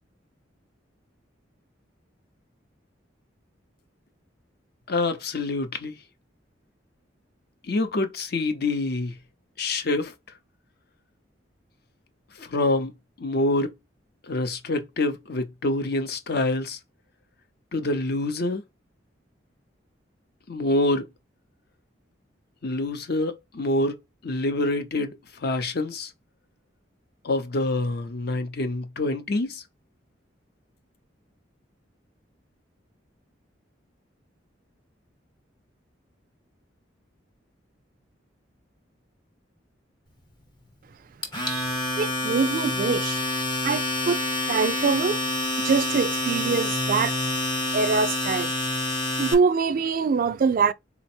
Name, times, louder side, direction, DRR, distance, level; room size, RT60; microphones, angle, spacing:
voice 1, 4.9-5.9 7.7-9.2 9.6-10.1 12.4-12.9 13.2-13.7 14.3-16.8 17.7-18.6 20.5-21.1 22.6-23.9 24.2-25.2 25.4-26.1 27.2-29.6, left 2 dB, 55° left, 0.7 m, -26 dB
Domestic sounds home sounds, 41.2-49.3, left 2 dB, 25° left, 1.0 m, -27 dB
voice 2, 42.0-43.2 43.6-45.2 45.6-47.2 47.7-48.5 49.2-50.7, right 5 dB, 50° right, 0.3 m, -24 dB
3.9 x 2.1 x 4.3 m
head